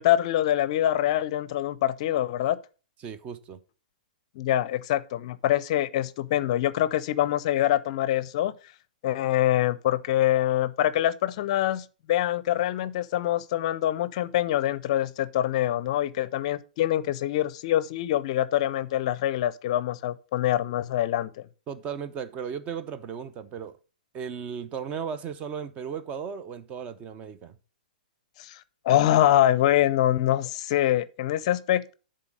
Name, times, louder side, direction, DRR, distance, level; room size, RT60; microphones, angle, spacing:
voice 1, 0.0-2.6 4.4-8.5 9.0-21.5 28.4-31.9, left 13 dB, 45° left, 0.5 m, -25 dB
voice 2, 3.0-3.6 21.7-23.8 24.1-27.5, right 7 dB, 30° right, 0.7 m, -36 dB
11.0 x 3.8 x 5.0 m
figure-of-eight pair, 115°, 5 cm